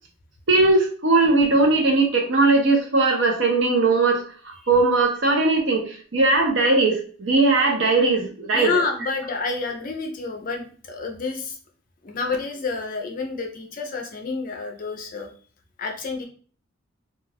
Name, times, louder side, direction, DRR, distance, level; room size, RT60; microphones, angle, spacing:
voice 1, 0.5-4.2 4.7-8.7, right 3 dB, 60° right, 2 dB, 0.7 m, -19 dB
voice 2, 8.5-11.6 12.0-15.3 15.8-16.2, left 4 dB, 40° left, 3 dB, 0.5 m, -29 dB
2.3 x 2.3 x 3.3 m, 0.43 s
head